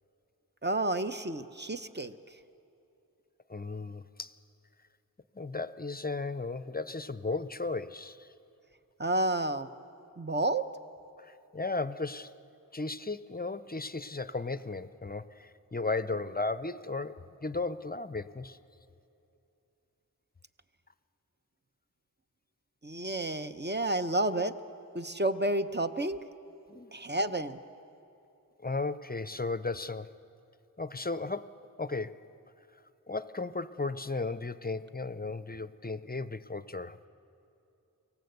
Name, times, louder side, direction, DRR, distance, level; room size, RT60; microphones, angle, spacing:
voice 1, 0.6-2.1 9.0-9.7 10.2-10.6 22.8-24.5 24.9-26.2 26.9-27.6, right 1 dB, 30° right, 9 dB, 0.8 m, -30 dB
voice 2, 3.5-4.3 5.3-8.3 11.2-12.3 12.7-18.6 26.7-27.0 28.6-30.1 30.8-32.2 33.1-37.1, left 3 dB, 25° left, 14 dB, 0.6 m, -35 dB
24.5 x 17.5 x 8.0 m, 2.8 s
wide cardioid pair, 50°, 37 cm